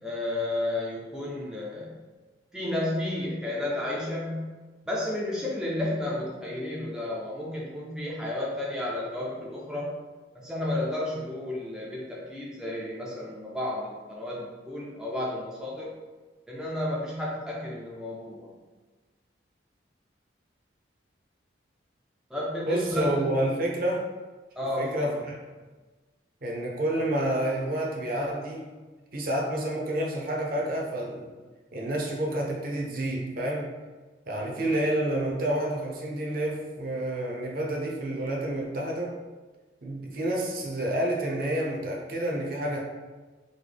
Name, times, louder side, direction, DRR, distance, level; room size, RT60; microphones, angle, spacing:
voice 1, 0.0-2.0 2.5-4.5 4.9-9.9 10.3-15.9 16.5-18.5 22.3-23.5 24.6-25.1, left 1 dB, 5° right, -5 dB, 0.4 m, -32 dB
voice 2, 22.6-24.0 24.8-25.4 26.4-28.7 29.1-31.3 31.7-33.7 34.3-39.2 39.8-42.8, right 1 dB, 50° right, -1 dB, 0.6 m, -29 dB
3.8 x 2.2 x 3.3 m, 1.3 s
head